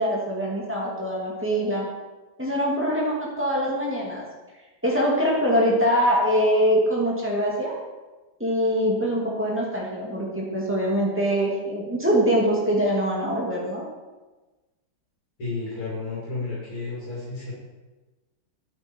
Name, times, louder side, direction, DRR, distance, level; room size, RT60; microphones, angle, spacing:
voice 1, 0.0-1.9 2.4-4.2 4.8-7.7 8.4-13.9, equal, 5° right, -4 dB, 2.3 m, -23 dB
voice 2, 15.4-17.5, left 3 dB, 90° left, -8 dB, 3.7 m, -32 dB
8.7 x 8.7 x 4.6 m, 1.2 s
omnidirectional pair, 2.3 m